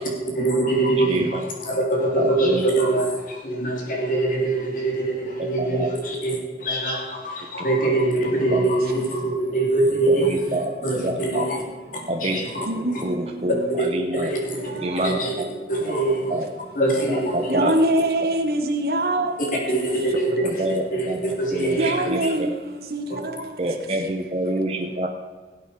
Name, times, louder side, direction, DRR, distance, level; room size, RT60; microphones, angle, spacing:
voice 1, 0.3-10.5 10.8-11.6 12.2-13.0 13.8-13.9 14.1-14.7 15.0-15.3 15.7-16.3 16.7-17.7 19.4-22.3 23.1-23.2, right 2 dB, 50° left, -1 dB, 3.0 m, -23 dB
voice 2, 1.1-1.4 2.2-2.6 5.4-5.9 8.5-8.7 10.1-10.2 10.5-11.5 12.1-12.7 13.0-14.3 14.8-15.5 16.3-16.5 17.1-17.7 20.6-22.5 23.6-25.1, right 1 dB, 35° right, 1 dB, 0.9 m, -27 dB
voice 3, 10.8-11.1 11.7-12.1 12.5-13.8 14.5-15.6 17.4-19.8 21.8-24.2 24.5-24.6, right 1 dB, 60° right, 4 dB, 1.3 m, -26 dB
17.5 x 8.2 x 4.9 m, 1.4 s
head